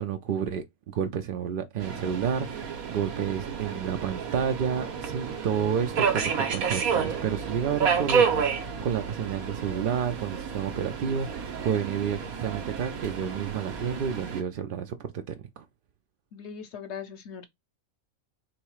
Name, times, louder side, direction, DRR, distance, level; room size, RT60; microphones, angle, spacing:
voice 1, 0.0-15.6, right 8 dB, 70° right, 0.5 m, -30 dB
Subway metro underground, 1.8-14.4, right 6 dB, 90° right, 1.4 m, -30 dB
voice 2, 16.3-17.5, left 7 dB, 60° left, 0.9 m, -39 dB
3.2 x 2.9 x 4.6 m
omnidirectional pair, 1.5 m